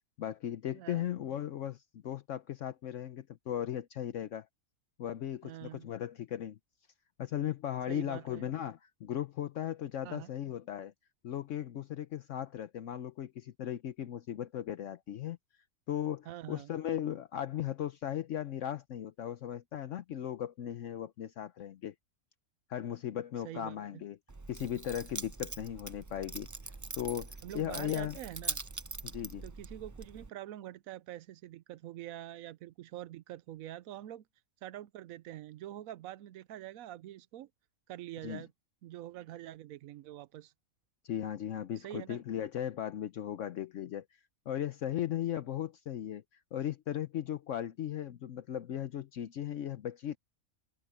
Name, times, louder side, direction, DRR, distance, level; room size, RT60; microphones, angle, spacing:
voice 1, 0.2-4.5 5.0-6.6 7.2-10.9 11.2-15.4 15.9-21.9 22.7-24.2 24.5-26.5 27.0-28.2 29.0-29.4 38.2-38.4 41.0-44.0 44.5-46.2 46.5-50.2, left 10 dB, 70° left, 1.0 m, -37 dB
voice 2, 0.7-1.1 5.4-5.9 7.9-8.4 10.0-10.3 16.3-16.7 23.4-24.0 27.4-28.6 29.4-34.2 34.6-37.5 37.9-38.5 38.8-40.5 41.8-42.2, right 13 dB, 85° right, 1.1 m, -45 dB
Keys jangling, 24.3-30.3, right 3 dB, 30° right, 0.3 m, -43 dB
omnidirectional pair, 1.4 m